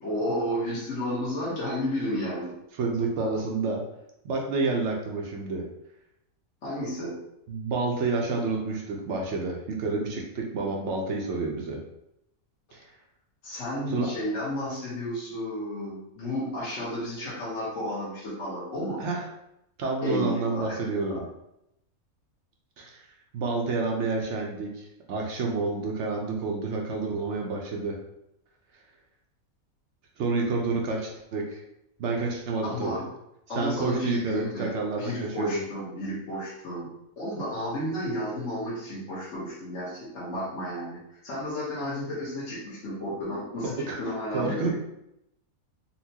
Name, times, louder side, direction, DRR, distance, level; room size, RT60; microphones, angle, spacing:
voice 1, 0.0-2.5 6.6-7.2 12.7-12.8 13.4-19.0 20.0-21.0 32.6-33.0 33.5-34.7 35.0-36.9 37.2-43.7 44.0-44.7, equal, 60° left, -9 dB, 1.3 m, -32 dB
voice 2, 2.7-3.8 4.2-5.6 7.5-11.8 12.7-12.9 13.9-14.1 19.0-19.3 19.8-21.3 22.8-28.0 28.7-28.8 30.2-31.6 32.0-33.0 33.5-35.6 43.6-44.7, right 3 dB, 65° right, 0 dB, 0.7 m, -29 dB
4.1 x 2.2 x 2.7 m, 0.83 s
omnidirectional pair, 1.5 m